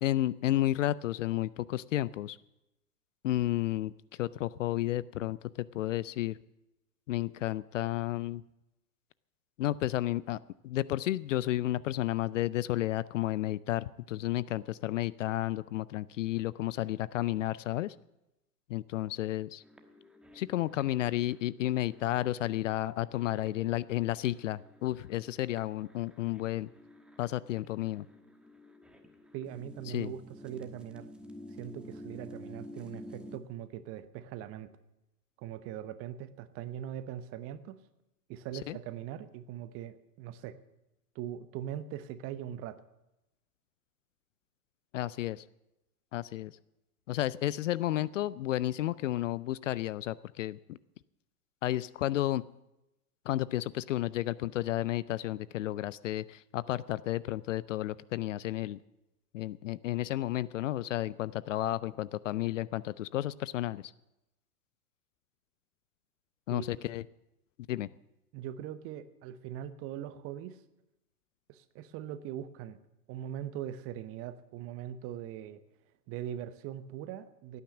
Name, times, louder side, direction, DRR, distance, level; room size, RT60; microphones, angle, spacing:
voice 1, 0.0-2.4 3.2-3.9 4.2-6.4 7.1-8.4 9.6-10.4 10.6-17.9 18.7-19.6 20.3-26.7 27.2-28.0 29.9-30.1 38.7-38.8 44.9-45.4 46.1-46.5 47.1-50.8 51.6-52.4 53.3-58.8 59.3-63.9 66.5-67.0 67.7-67.9, left 14 dB, 55° left, 20 dB, 0.5 m, -32 dB
sound 1, 19.6-33.4, left 1 dB, ahead, 1.3 m, -51 dB
voice 2, 29.3-31.1 31.6-34.7 35.4-37.8 38.3-40.6 41.1-42.8 66.5-66.9 68.3-70.6 71.5-72.8 73.1-75.6 76.1-77.6, right 10 dB, 30° right, 13 dB, 0.9 m, -41 dB
17.0 x 9.6 x 7.2 m, 0.92 s
hypercardioid pair, 105°, 47 cm